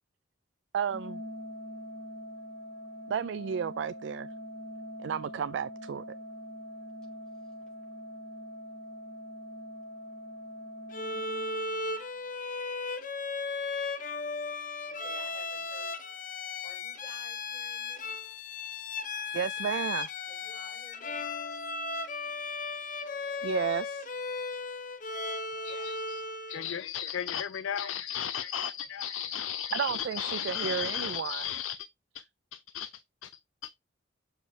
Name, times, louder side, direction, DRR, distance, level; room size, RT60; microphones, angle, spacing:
voice 1, 0.7-1.2 3.1-4.3 5.0-6.0 19.3-20.1 23.4-24.1 29.7-31.4, right 7 dB, 65° right, 0.3 m, -32 dB
Organ, 0.9-11.9, equal, 45° right, 2.1 m, -44 dB
Bowed string instrument, 10.9-26.7, left 3 dB, 40° left, 0.8 m, -36 dB
voice 2, 14.8-15.9 16.6-18.2 20.3-21.3 30.0-31.7, left 1 dB, 5° left, 5.2 m, -55 dB
voice 3, 25.6-26.2 26.5-31.8 32.1-32.2 32.5-33.3 33.6-33.7, left 9 dB, 85° left, 0.4 m, -35 dB
7.1 x 4.9 x 3.2 m
head